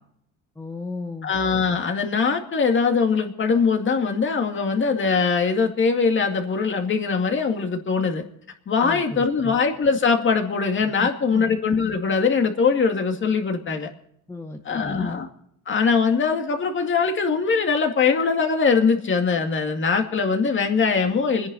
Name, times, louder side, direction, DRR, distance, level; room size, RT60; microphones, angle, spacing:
voice 1, 0.6-1.3 8.8-9.6 10.8-11.5 14.3-15.2, left 2 dB, 10° left, 5 dB, 0.9 m, -34 dB
voice 2, 1.2-8.2 8.7-13.9 14.7-15.3 15.7-21.5, left 5 dB, 40° left, 4 dB, 2.2 m, -22 dB
28.5 x 10.5 x 4.1 m, 0.71 s
cardioid pair, 115°, 32 cm